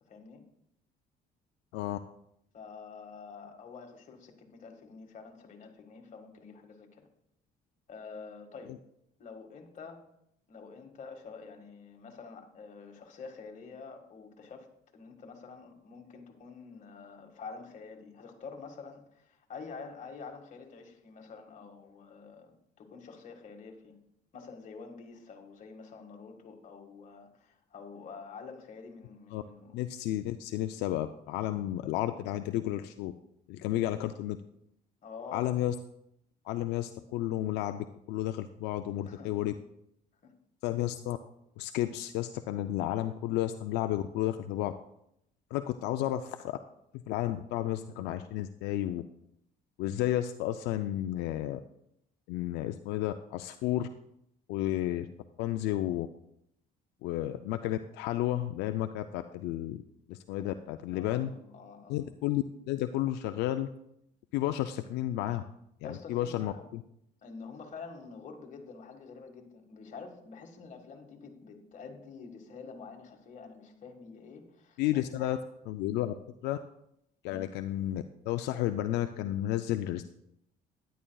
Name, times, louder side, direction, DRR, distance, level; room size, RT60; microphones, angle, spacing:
voice 1, 0.1-0.4 2.5-7.1 7.9-8.8 9.2-10.0 10.5-14.7 14.9-24.0 24.3-29.7 35.0-35.5 39.0-39.3 40.2-40.3 60.4-60.5 60.9-62.1 65.8-66.7 67.2-75.4 77.3-77.5, left 5 dB, 45° left, 3 dB, 1.7 m, -47 dB
voice 2, 29.7-33.1 33.5-34.4 35.3-35.7 36.4-39.5 40.6-41.2 41.6-44.7 45.5-46.6 47.1-49.0 49.8-51.6 52.3-53.9 54.5-55.1 55.4-56.1 57.0-59.8 60.1-61.3 61.9-63.7 64.3-65.4 65.8-66.8 74.8-75.4 75.7-76.1 76.4-76.6 77.2-80.0, left 13 dB, 90° left, 8 dB, 0.4 m, -32 dB
12.5 x 10.5 x 2.3 m, 0.77 s
cardioid pair, 110°, 17 cm